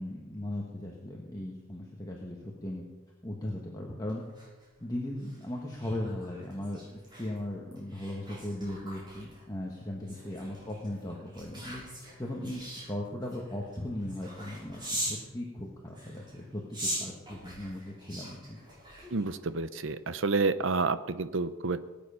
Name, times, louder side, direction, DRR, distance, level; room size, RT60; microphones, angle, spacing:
voice 1, 0.0-2.8 3.2-4.2 4.8-11.8 12.2-12.6 12.9-18.6, left 1 dB, 15° left, -2 dB, 1.4 m, -38 dB
sound 1, 4.1-15.3 15.9-19.5 19.9-20.2, right 1 dB, 20° right, 6.4 m, -42 dB
voice 2, 19.1-21.9, right 3 dB, 60° right, 13 dB, 0.7 m, -29 dB
18.5 x 9.2 x 5.6 m, 1.2 s
head